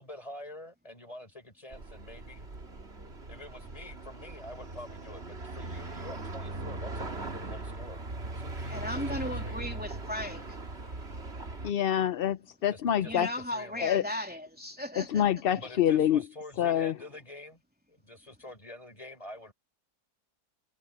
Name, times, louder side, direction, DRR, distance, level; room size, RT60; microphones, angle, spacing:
voice 1, 0.0-2.5 3.3-8.0 8.3-9.6 12.7-14.0 15.5-17.6 17.9-19.5, left 1 dB, 20° left, 5.7 m, -47 dB
sound 1, 1.7-11.7, right 2 dB, 45° right, 2.5 m, -39 dB
voice 2, 8.7-10.4 12.9-15.3, left 1 dB, 5° right, 3.2 m, -36 dB
voice 3, 11.6-13.3 13.8-14.0 15.0-16.2 16.6-17.0, left 10 dB, 65° left, 0.5 m, -26 dB
omnidirectional pair, 1.6 m